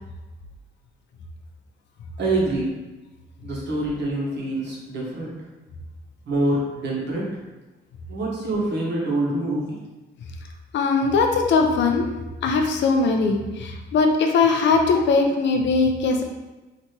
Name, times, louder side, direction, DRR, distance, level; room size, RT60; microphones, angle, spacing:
voice 1, 2.2-2.7 3.4-5.3 6.2-7.4 8.1-9.8, right 2 dB, 60° right, -4 dB, 1.2 m, -25 dB
voice 2, 10.7-12.1 12.4-16.2, left 4 dB, 65° left, 4 dB, 0.5 m, -20 dB
3.3 x 2.9 x 2.9 m, 1.1 s
cardioid pair, 90°, 20 cm